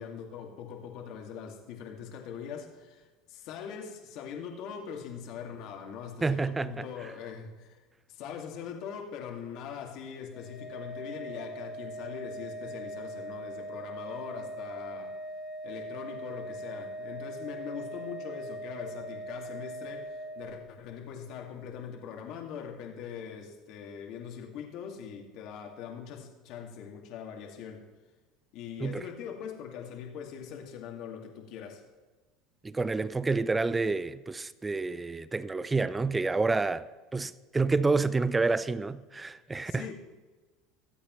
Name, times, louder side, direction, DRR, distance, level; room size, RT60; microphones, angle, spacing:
voice 1, 0.0-7.8 8.1-15.1 15.6-27.8 28.5-31.8 39.7-39.9, left 7 dB, 60° left, 2.1 m, -42 dB
voice 2, 6.2-6.9 28.8-29.0 32.6-36.9 37.1-39.9, right 3 dB, 15° right, 0.5 m, -28 dB
Organ, 10.3-21.0, equal, 35° left, 2.2 m, -41 dB
23.5 x 8.4 x 3.1 m
supercardioid pair, 120°, 0 cm